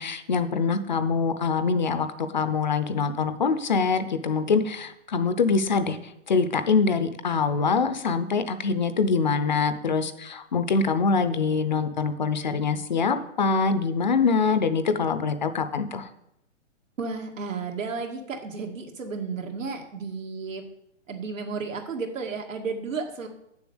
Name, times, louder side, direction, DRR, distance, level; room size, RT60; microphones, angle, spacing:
voice 1, 0.0-16.1, left 5 dB, 40° left, 10 dB, 0.6 m, -24 dB
voice 2, 17.0-20.6 21.1-23.3, right 4 dB, 85° right, 2 dB, 2.3 m, -33 dB
7.2 x 6.8 x 7.9 m, 0.78 s
hypercardioid pair, 170°, 38 cm